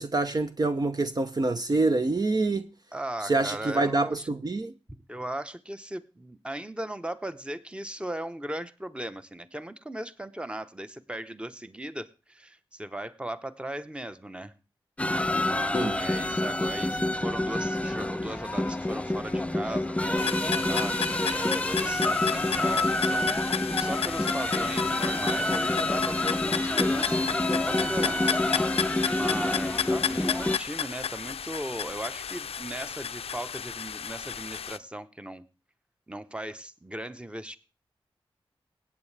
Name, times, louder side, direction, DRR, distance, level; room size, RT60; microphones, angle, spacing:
voice 1, 0.0-2.7 3.2-4.7 15.7-16.0, right 2 dB, 40° right, 0.8 m, -26 dB
voice 2, 2.9-4.3 5.1-14.5 15.4-22.0 22.3-28.2 29.1-35.4 36.1-37.6, right 1 dB, 10° right, 1.0 m, -37 dB
sound 1, 15.0-30.6, left 1 dB, 15° left, 0.5 m, -27 dB
sound 2, 20.2-34.8, left 8 dB, 80° left, 0.5 m, -33 dB
18.0 x 8.6 x 3.4 m
cardioid pair, 45°, 10 cm